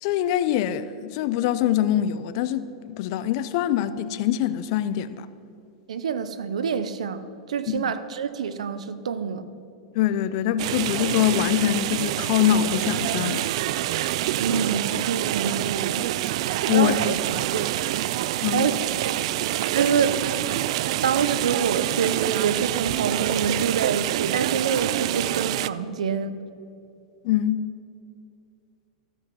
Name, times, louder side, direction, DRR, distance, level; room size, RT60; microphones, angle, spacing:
voice 1, 0.0-5.3 7.7-7.9 9.9-13.5 16.7-17.6 18.4-18.7 27.2-27.6, left 11 dB, 55° left, 0.6 m, -24 dB
voice 2, 5.9-7.2 7.5-9.4 14.4-16.1 16.7-17.1 17.5-17.7 18.5-18.7 19.0-19.2 19.7-20.2 21.0-26.3, right 6 dB, 90° right, 0.7 m, -26 dB
sound 1, 10.6-25.7, right 14 dB, 65° right, 0.3 m, -26 dB
13.5 x 7.5 x 5.8 m
hypercardioid pair, 130°, 3 cm